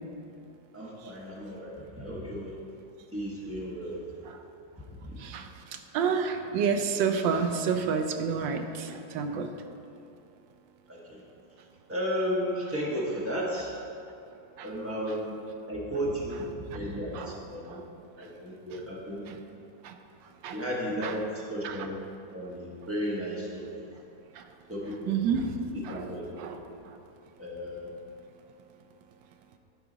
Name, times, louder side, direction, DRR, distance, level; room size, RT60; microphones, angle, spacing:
voice 1, 0.7-2.5 3.1-4.0 5.0-5.1 10.9-11.2 11.9-13.8 14.6-15.3 15.7-17.8 18.2-19.2 20.5-22.0 22.3-23.7 24.7-25.2 25.7-26.5 27.4-27.9, equal, 10° right, -5 dB, 1.0 m, -34 dB
voice 2, 5.9-9.5 14.6-14.7 17.1-17.3 17.7-17.8 19.3-19.4 19.8-19.9 20.4-20.6 21.0-21.1 21.6-21.8 24.4-24.5 25.1-25.5 25.8-26.1 26.4-26.6 26.9-27.0, right 6 dB, 75° right, 6 dB, 1.3 m, -29 dB
12.0 x 4.8 x 3.9 m, 2.6 s
omnidirectional pair, 2.1 m